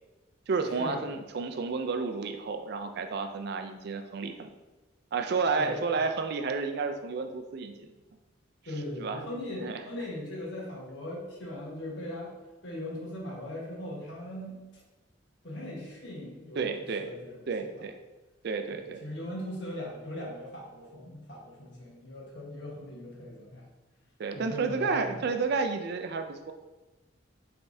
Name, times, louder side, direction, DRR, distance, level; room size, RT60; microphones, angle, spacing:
voice 1, 0.5-4.5 5.1-7.7 9.0-9.2 9.6-9.8 16.6-17.1 17.5-17.9 18.4-19.0 24.2-26.5, right 4 dB, 55° right, 6 dB, 0.4 m, -31 dB
voice 2, 8.7-12.3 12.6-14.6 15.4-16.7 17.0-17.3 17.6-17.7 18.7-23.7 24.3-25.2, left 1 dB, 65° left, -4 dB, 1.3 m, -39 dB
5.0 x 3.4 x 2.7 m, 1.1 s
head